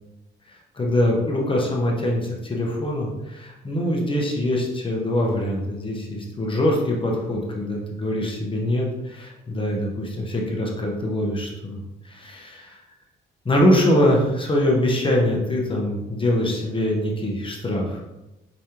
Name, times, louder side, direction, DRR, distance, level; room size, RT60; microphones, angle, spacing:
voice 1, 0.5-11.8 12.0-12.8 13.4-18.0, left 1 dB, 25° left, -1 dB, 1.1 m, -23 dB
5.1 x 3.2 x 2.9 m, 0.99 s
cardioid pair, 90°, 20 cm